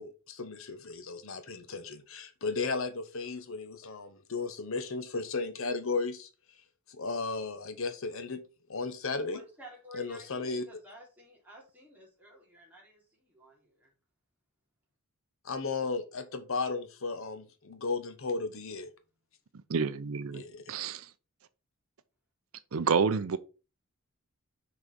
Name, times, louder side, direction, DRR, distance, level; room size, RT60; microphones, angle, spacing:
voice 1, 0.0-6.3 6.9-8.4 8.7-9.4 9.9-10.7 15.4-18.9 20.3-20.9, left 4 dB, 65° left, 1.0 m, -35 dB
voice 2, 9.3-13.9, equal, 10° right, 3.3 m, -52 dB
voice 3, 19.7-20.4 20.7-21.1 22.7-23.4, right 5 dB, 70° right, 0.6 m, -28 dB
6.2 x 4.7 x 5.3 m
head